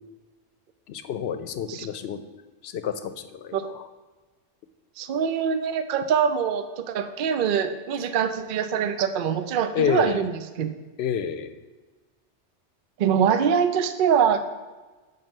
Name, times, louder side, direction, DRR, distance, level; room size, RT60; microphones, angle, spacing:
voice 1, 0.9-2.2 2.6-3.8 9.7-10.2 11.0-11.6, left 8 dB, 65° left, 10 dB, 0.8 m, -29 dB
voice 2, 5.0-10.3 10.6-10.7 13.0-14.4, right 7 dB, 55° right, 10 dB, 0.6 m, -23 dB
7.6 x 5.5 x 5.4 m, 1.3 s
omnidirectional pair, 1.2 m